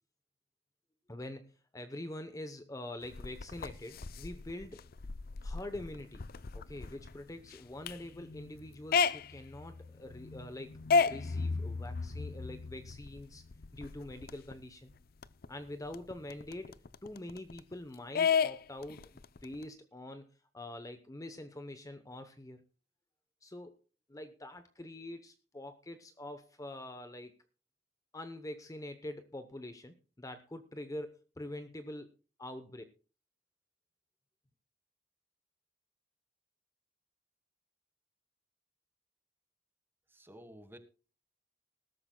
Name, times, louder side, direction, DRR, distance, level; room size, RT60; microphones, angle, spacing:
voice 1, 1.1-4.8 5.4-6.2 6.5-10.8 11.0-13.4 13.7-15.0 15.5-22.6 23.4-23.8 24.1-27.3 28.1-32.1 32.4-32.8, left 1 dB, 20° left, 9 dB, 0.9 m, -45 dB
sound 1, 3.0-14.5 14.9-15.0 15.2-17.7 18.2-19.6, left 5 dB, 55° left, 0.6 m, -34 dB
voice 2, 40.1-40.8, equal, 10° right, 9 dB, 1.5 m, -52 dB
20.0 x 12.5 x 2.3 m, 0.35 s
head